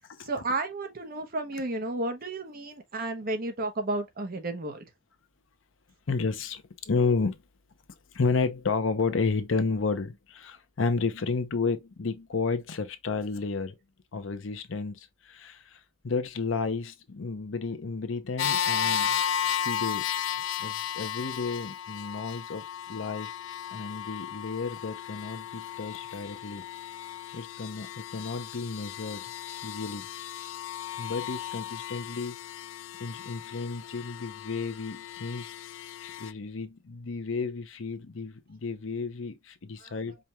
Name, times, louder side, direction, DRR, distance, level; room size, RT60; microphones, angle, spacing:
voice 1, 0.2-4.8 39.8-39.9, right 2 dB, 50° right, 0.9 m, -32 dB
voice 2, 6.1-7.4 8.1-13.8 14.1-19.2 19.6-20.1 20.6-23.3 23.7-26.6 27.3-29.3 29.6-30.1 31.0-32.4 33.0-35.5 36.0-40.2, left 4 dB, 90° left, 0.7 m, -32 dB
sound 1, 18.4-36.3, left 9 dB, 70° left, 0.3 m, -34 dB
5.0 x 2.3 x 2.8 m
head